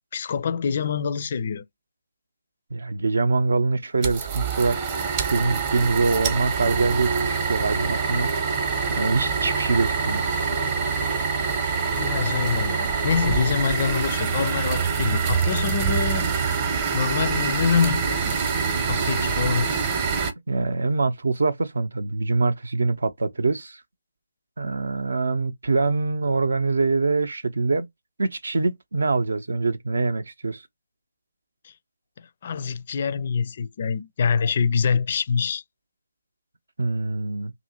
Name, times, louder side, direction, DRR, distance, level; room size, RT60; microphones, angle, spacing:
voice 1, 0.1-1.6 11.9-16.6 16.9-18.3 18.8-19.7 31.6-31.7 32.2-35.6, left 6 dB, 35° left, 0.4 m, -25 dB
voice 2, 2.7-4.8 5.3-8.3 8.9-10.2 20.5-23.8 24.6-27.9 28.2-30.6 36.8-37.5, right 3 dB, 60° right, 0.6 m, -24 dB
sound 1, 4.0-20.3, right 5 dB, 25° right, 0.8 m, -25 dB
2.7 x 2.7 x 2.7 m
figure-of-eight pair, 150°, 0 cm